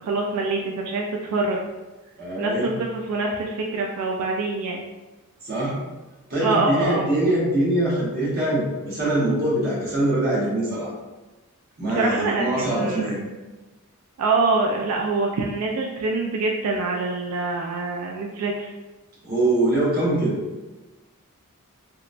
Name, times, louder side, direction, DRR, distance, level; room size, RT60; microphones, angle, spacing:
voice 1, 0.0-1.6 2.4-4.8 6.4-7.1 11.9-13.1 14.2-18.7, right 3 dB, 85° right, 0 dB, 0.3 m, -25 dB
voice 2, 2.2-2.7 5.4-5.8 6.3-10.9 11.8-13.2 19.2-20.4, right 1 dB, 45° right, -6 dB, 1.0 m, -23 dB
2.9 x 2.2 x 2.4 m, 1.2 s
head